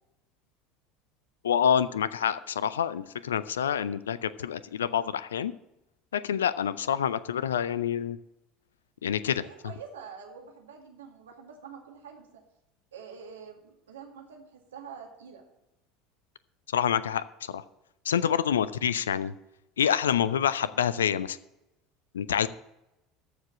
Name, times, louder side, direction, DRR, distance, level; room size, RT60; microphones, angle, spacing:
voice 1, 1.4-5.5 6.1-8.2 9.0-9.4 16.7-17.6 18.1-19.3 19.8-21.4 22.1-22.5, left 8 dB, 75° left, 17 dB, 0.4 m, -27 dB
voice 2, 9.4-12.4 12.9-15.4 18.9-19.1, right 6 dB, 70° right, 2 dB, 2.0 m, -46 dB
13.5 x 5.0 x 7.2 m, 0.92 s
figure-of-eight pair, 70°, 0 cm